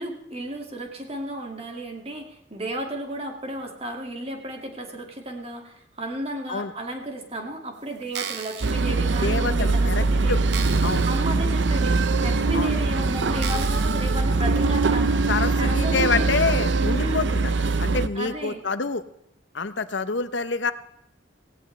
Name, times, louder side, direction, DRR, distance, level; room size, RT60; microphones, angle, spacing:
voice 1, 0.0-10.4 11.0-15.3 15.6-16.5 16.8-17.4 18.1-18.6, right 1 dB, 30° right, 3 dB, 2.2 m, -33 dB
sound 1, 8.0-8.7 9.4-9.5 10.0-10.1 10.5-11.2 11.6-11.7 12.5-12.6 13.4-14.1 14.6-14.7, right 8 dB, 60° right, 1.0 m, -35 dB
sound 2, 8.6-18.1, right 3 dB, 80° right, 0.7 m, -22 dB
voice 2, 9.2-10.4 10.8-11.1 12.5-12.7 15.3-17.5 17.8-19.0 19.5-20.7, left 4 dB, 75° left, 12 dB, 0.8 m, -27 dB
17.5 x 17.0 x 3.3 m, 0.79 s
head